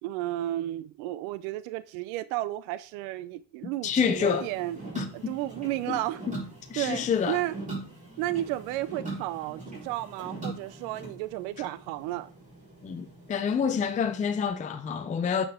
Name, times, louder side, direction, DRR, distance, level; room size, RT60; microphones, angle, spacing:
voice 1, 0.0-4.8 5.1-6.2 6.8-7.5 8.2-12.3, right 15 dB, 80° right, 0.5 m, -33 dB
voice 2, 3.8-4.5 5.0-5.3 5.9-6.0 6.3-6.4 6.7-7.4 12.8-15.5, left 7 dB, 20° left, 0.5 m, -28 dB
sound 1, 3.8-14.5, right 2 dB, 20° right, 4.2 m, -42 dB
8.8 x 5.2 x 3.6 m
cardioid pair, 115°, 36 cm